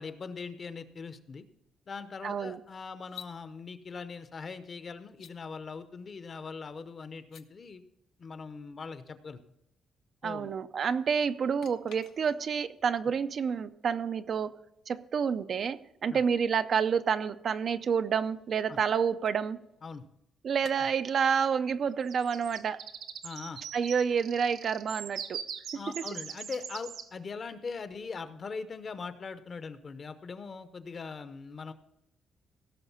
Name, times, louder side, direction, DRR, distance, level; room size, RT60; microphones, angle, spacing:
voice 1, 0.0-1.5 1.9-7.8 8.2-9.4 10.2-10.5 16.1-16.2 18.7-18.8 19.8-20.1 20.8-20.9 23.2-23.6 25.7-31.7, left 5 dB, 35° left, 0.7 m, -41 dB
voice 2, 2.2-2.6 10.2-14.5 14.9-19.6 20.4-22.8 23.7-25.4, right 6 dB, 50° right, 0.4 m, -29 dB
sound 1, 3.0-3.4 5.1-5.4 7.2-7.5 11.6-12.6 15.8-15.9 17.9-20.0 20.6-20.8, left 8 dB, 70° left, 0.7 m, -52 dB
sound 2, 22.1-27.1, right 8 dB, 80° right, 0.9 m, -42 dB
16.5 x 6.3 x 5.6 m
cardioid pair, 145°, 0 cm